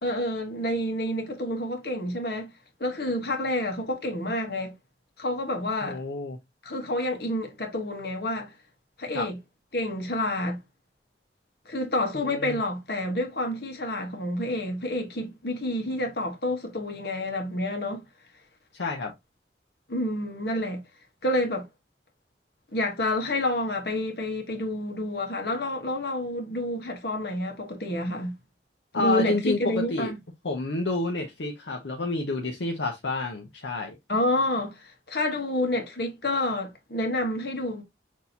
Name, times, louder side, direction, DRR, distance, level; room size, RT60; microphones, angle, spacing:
voice 1, 0.0-2.5 2.8-4.7 5.2-6.0 6.6-8.5 9.0-9.4 9.7-10.6 11.7-18.0 19.9-20.8 21.2-21.7 22.7-28.4 28.9-30.2 34.1-37.8, left 1 dB, 60° left, 1.2 m, -29 dB
voice 2, 5.8-6.4 9.1-9.3 12.1-12.6 18.7-19.1 28.9-30.1 30.4-34.0, left 2 dB, 75° left, 0.7 m, -29 dB
6.1 x 2.7 x 2.7 m
head